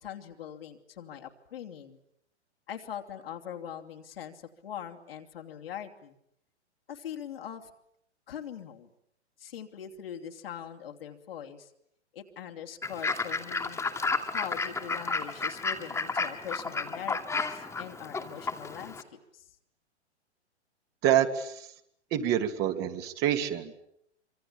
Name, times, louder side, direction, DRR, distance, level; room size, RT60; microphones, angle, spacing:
voice 1, 0.0-2.0 2.7-6.2 6.9-7.7 8.3-8.9 9.4-11.7 12.1-13.8 14.3-19.5, left 9 dB, 55° left, 4 dB, 3.0 m, -42 dB
Fowl / Bird, 12.8-19.0, left 4 dB, 5° left, 2.5 m, -32 dB
voice 2, 21.0-21.7 22.1-23.8, right 10 dB, 30° right, 6 dB, 2.5 m, -27 dB
26.0 x 25.5 x 8.7 m, 0.73 s
figure-of-eight pair, 110°, 34 cm